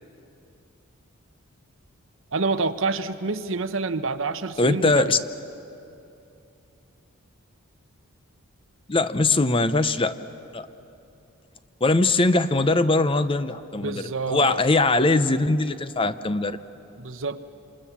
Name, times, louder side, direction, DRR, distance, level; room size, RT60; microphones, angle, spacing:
voice 1, 2.3-5.2 13.8-14.6 17.0-17.4, right 3 dB, 60° right, 11 dB, 0.9 m, -27 dB
voice 2, 4.6-5.2 8.9-10.2 10.5-10.7 11.8-16.6, left 2 dB, 25° left, 12 dB, 0.6 m, -21 dB
28.0 x 27.0 x 7.2 m, 2.8 s
head